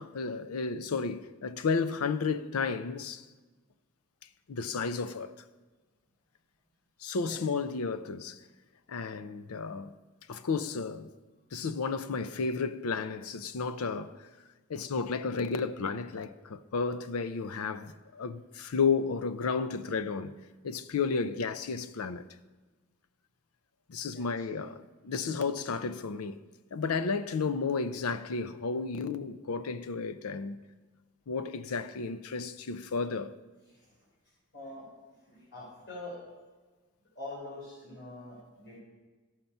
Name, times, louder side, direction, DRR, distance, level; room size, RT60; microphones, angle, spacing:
voice 1, 0.0-3.2 4.5-5.3 7.0-8.4 8.9-10.0 10.3-11.1 11.5-14.3 14.7-20.3 20.6-22.3 23.9-26.4 26.7-30.6 31.3-33.4, left 4 dB, 80° left, 0.5 m, -32 dB
voice 2, 34.5-34.9 35.3-36.2 37.2-38.8, left 2 dB, 55° left, 3.6 m, -44 dB
13.0 x 5.8 x 5.4 m
head